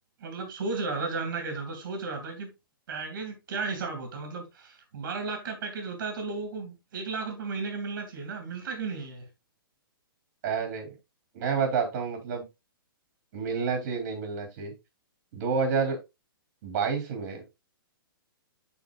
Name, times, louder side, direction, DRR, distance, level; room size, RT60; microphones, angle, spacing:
voice 1, 0.2-2.5 2.9-9.3, right 4 dB, 60° right, 2.5 m, -34 dB
voice 2, 10.4-10.9 11.3-12.4 13.3-14.7 15.3-16.0 16.6-17.4, right 5 dB, 45° right, 3.5 m, -29 dB
12.0 x 4.4 x 2.4 m
hypercardioid pair, 140°, 12 cm